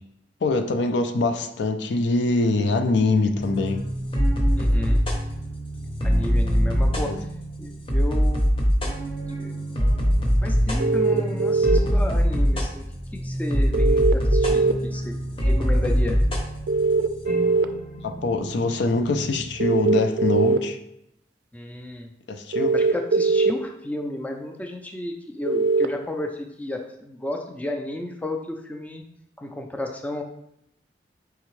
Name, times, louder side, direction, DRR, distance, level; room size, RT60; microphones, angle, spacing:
voice 1, 0.4-3.9 7.0-7.2 18.0-20.8 22.3-22.8, left 3 dB, 80° left, 7 dB, 0.4 m, -23 dB
sound 1, 3.4-19.6, equal, 30° left, 0.7 m, -24 dB
voice 2, 4.6-5.0 6.0-7.1 7.6-8.5 9.1-9.5 10.4-12.8 13.1-16.2 21.5-22.1 22.7-29.0 29.4-30.2, left 1 dB, 10° left, 3 dB, 0.3 m, -33 dB
sound 2, 10.8-11.8 13.7-14.7 16.7-17.6 19.6-20.6 22.5-23.5 25.5-25.9, right 4 dB, 70° right, 0.4 m, -20 dB
4.6 x 3.4 x 3.1 m, 0.78 s
head